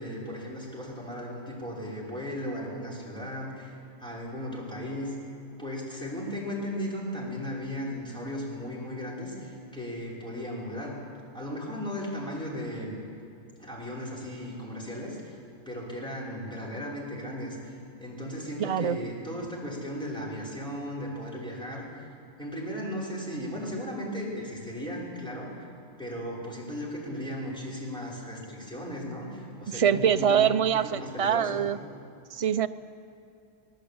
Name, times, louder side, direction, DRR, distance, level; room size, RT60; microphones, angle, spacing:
voice 1, 0.0-11.0 11.3-13.0 13.6-15.4 15.7-17.6 18.0-21.9 22.4-25.7 26.0-31.6, equal, 5° left, -6 dB, 5.7 m, -36 dB
voice 2, 18.6-19.0 29.7-31.8 32.3-32.7, right 8 dB, 55° right, 10 dB, 0.4 m, -24 dB
24.5 x 18.0 x 8.7 m, 2.5 s
omnidirectional pair, 1.4 m